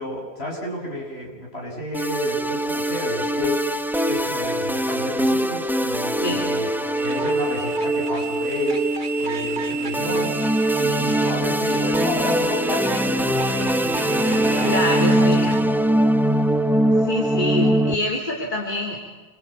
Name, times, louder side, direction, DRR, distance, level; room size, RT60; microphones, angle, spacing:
voice 1, 0.0-3.6 4.1-6.7 7.0-8.8 9.2-10.3 10.8-14.7 15.2-15.3, left 1 dB, 70° left, -2 dB, 7.5 m, -31 dB
sound 1, 1.9-17.9, right 1 dB, ahead, 0.9 m, -22 dB
sound 2, 7.0-15.6, right 5 dB, 45° right, 1.5 m, -33 dB
voice 2, 14.6-15.6 17.0-19.0, left 1 dB, 45° left, -1 dB, 3.4 m, -25 dB
28.5 x 23.0 x 9.1 m, 1.2 s
omnidirectional pair, 1.1 m